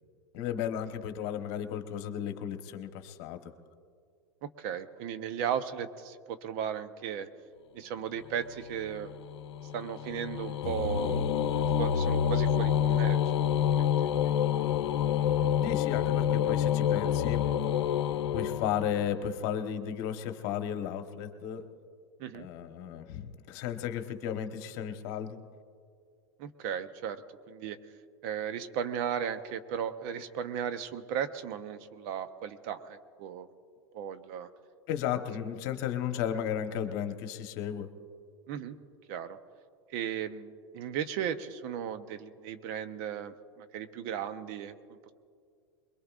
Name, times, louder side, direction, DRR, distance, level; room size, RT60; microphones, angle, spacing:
voice 1, 0.3-3.4 15.6-17.4 18.3-21.6 22.3-25.4 34.9-37.9, left 9 dB, 55° left, 7 dB, 1.2 m, -34 dB
voice 2, 4.4-7.3 7.7-9.1 9.7-11.2 11.5-14.3 22.2-22.5 26.4-27.2 27.5-27.8 28.2-33.5 33.9-34.5 38.5-38.8 39.1-39.4 39.9-45.1, right 8 dB, 55° right, 11 dB, 0.8 m, -36 dB
sound 1, 8.3-19.3, left 9 dB, 80° left, 0.7 m, -28 dB
22.0 x 22.0 x 2.5 m, 2.2 s
hypercardioid pair, 110°, 14 cm